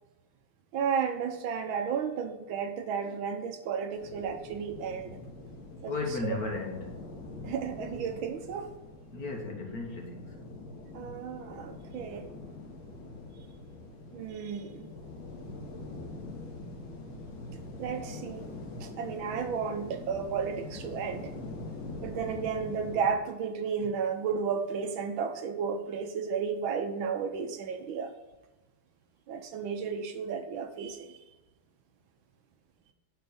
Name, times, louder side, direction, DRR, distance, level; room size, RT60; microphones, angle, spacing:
voice 1, 0.7-5.2 5.8-6.4 7.4-8.7 10.9-12.3 14.1-14.9 17.8-18.5 18.8-21.3 22.0-28.1 29.3-31.2, right 6 dB, 75° right, 7 dB, 1.6 m, -33 dB
sound 1, 3.9-23.1, left 2 dB, 70° left, 2.1 m, -44 dB
voice 2, 5.9-7.0 9.1-10.5, left 3 dB, 50° left, 2 dB, 1.7 m, -35 dB
8.6 x 4.5 x 6.8 m, 1.0 s
omnidirectional pair, 2.3 m